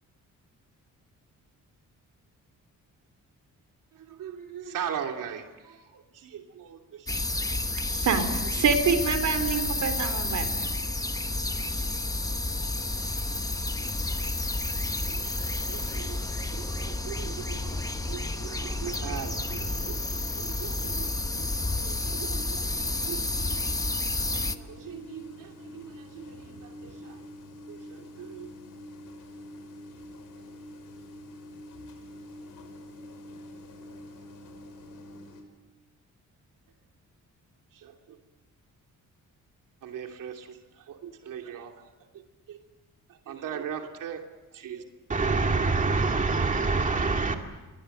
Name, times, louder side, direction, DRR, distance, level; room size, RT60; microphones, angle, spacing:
voice 1, 3.9-7.1 7.9-8.0 11.6-11.9 15.0-27.2 27.7-28.5 37.7-38.2 39.8-41.9 42.1-42.6 43.1-44.2 44.5-44.8, right 8 dB, 80° right, 2.9 m, -41 dB
sound 1, 7.1-24.6, left 2 dB, 10° left, 1.1 m, -30 dB
voice 2, 7.9-8.3 8.5-10.7, right 5 dB, 65° right, 3.7 m, -26 dB
sound 2, 15.7-35.4, left 1 dB, 85° left, 5.9 m, -47 dB
voice 3, 45.1-47.4, right 3 dB, 25° right, 2.2 m, -25 dB
29.0 x 23.5 x 7.9 m
cardioid pair, 120°, 32 cm